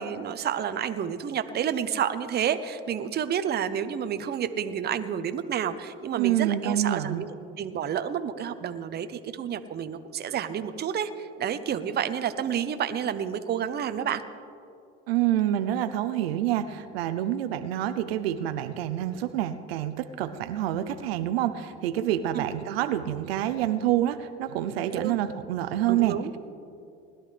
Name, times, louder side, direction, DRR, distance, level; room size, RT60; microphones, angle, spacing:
voice 1, 0.0-14.2 22.3-22.5 25.0-25.2 25.9-26.3, right 8 dB, 35° right, 10 dB, 0.8 m, -30 dB
voice 2, 6.2-7.2 15.1-26.2, right 12 dB, 85° right, 10 dB, 0.7 m, -27 dB
20.0 x 12.0 x 3.3 m, 2.6 s
hypercardioid pair, 90°, 30 cm